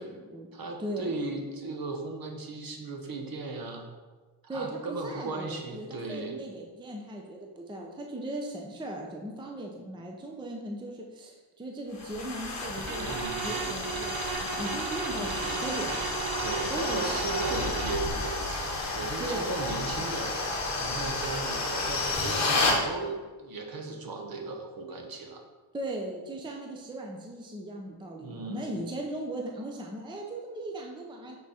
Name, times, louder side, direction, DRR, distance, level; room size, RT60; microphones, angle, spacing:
voice 1, 0.0-0.5 0.8-1.3 4.5-14.1 14.6-16.1 16.6-17.2 17.5-17.6 19.2-19.9 25.7-31.4, right 1 dB, 10° right, 0 dB, 0.6 m, -38 dB
voice 2, 0.5-3.9 4.4-6.4 13.1-13.5 16.4-20.3 20.8-25.4 28.2-28.7, right 3 dB, 45° right, 3 dB, 1.1 m, -36 dB
sound 1, 12.0-22.8, left 2 dB, 35° left, 1.3 m, -31 dB
sound 2, 12.8-18.1, right 6 dB, 65° right, 1.1 m, -35 dB
6.1 x 5.9 x 4.2 m, 1.3 s
cardioid pair, 140°, 50 cm